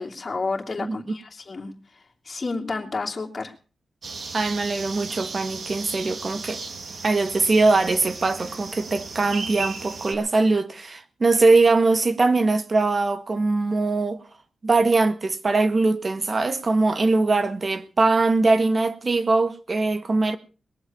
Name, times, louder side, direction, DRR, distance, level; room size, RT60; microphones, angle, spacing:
voice 1, 0.0-1.7 2.2-3.5, left 3 dB, 40° left, 2.7 m, -30 dB
voice 2, 0.8-1.1 4.3-6.6 7.0-14.2 14.6-20.4, right 3 dB, 40° right, 1.7 m, -21 dB
sound 1, 4.0-10.1, right 4 dB, 65° right, 2.5 m, -36 dB
20.5 x 8.0 x 7.2 m
wide cardioid pair, 95°, 0 cm